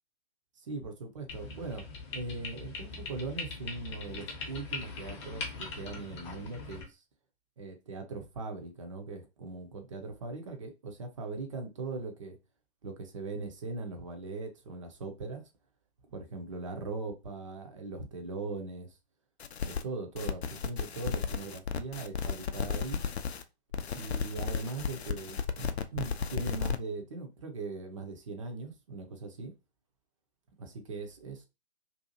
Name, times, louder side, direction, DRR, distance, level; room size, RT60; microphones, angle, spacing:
voice 1, 0.6-1.9 2.1-7.0 7.6-12.4 12.8-15.4 16.1-19.0 19.6-23.0 23.9-29.5 30.6-31.5, right 3 dB, 30° right, 0.5 m, -40 dB
sound 1, 1.3-6.8, left 4 dB, 25° left, 0.7 m, -41 dB
sound 2, 19.4-19.8 20.2-23.4 23.7-26.8, left 7 dB, 75° left, 0.5 m, -34 dB
2.6 x 2.3 x 2.6 m
figure-of-eight pair, 125°, 33 cm